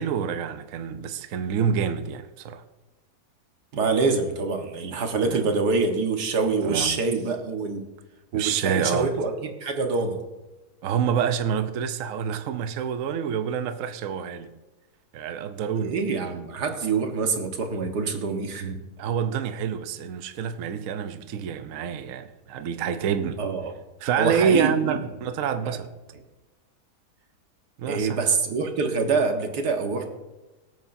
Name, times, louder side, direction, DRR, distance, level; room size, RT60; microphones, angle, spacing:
voice 1, 0.0-2.6 5.3-5.4 6.6-6.9 8.3-9.1 10.8-14.5 15.1-16.0 19.0-23.4 24.0-25.9 27.8-28.3, right 7 dB, 65° right, 1.0 m, -27 dB
voice 2, 3.7-7.8 8.3-10.2 15.8-18.8 23.4-23.7 24.2-25.0 25.7-25.8 27.8-30.1, right 4 dB, 90° right, 1.9 m, -25 dB
23.0 x 9.1 x 2.7 m
omnidirectional pair, 1.7 m